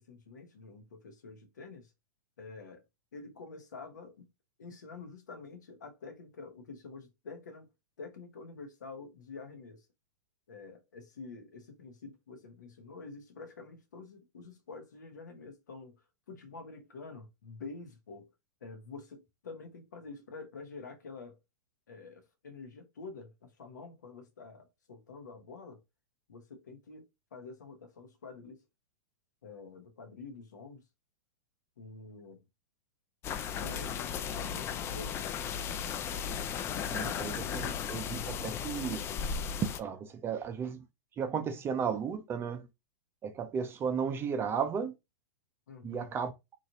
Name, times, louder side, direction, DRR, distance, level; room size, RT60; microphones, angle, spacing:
voice 1, 0.0-1.9 2.4-2.8 3.1-4.2 4.6-7.7 8.0-9.9 10.5-16.0 16.3-18.3 18.6-21.4 21.9-25.8 26.3-27.0 27.3-28.6 29.4-30.8 31.8-32.4 33.6-35.2 45.7-46.1, left 4 dB, 80° left, 0.9 m, -48 dB
sound 1, 33.2-39.8, left 7 dB, 25° left, 0.3 m, -35 dB
voice 2, 36.9-39.0 39.6-40.8 41.2-42.7 43.2-44.9 45.8-46.3, right 6 dB, 25° right, 0.5 m, -34 dB
3.0 x 2.4 x 2.7 m
hypercardioid pair, 110°, 10 cm